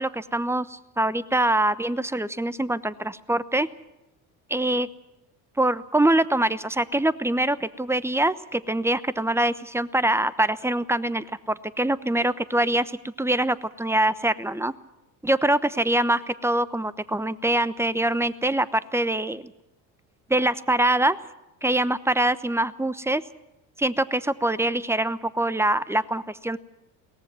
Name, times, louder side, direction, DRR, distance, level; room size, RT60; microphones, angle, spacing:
voice 1, 0.0-3.7 4.5-4.9 5.6-14.7 15.2-19.5 20.3-21.2 21.6-23.2 23.8-26.6, right 1 dB, 5° right, 16 dB, 1.0 m, -24 dB
22.5 x 18.0 x 7.7 m, 0.94 s
hypercardioid pair, 70°, 45 cm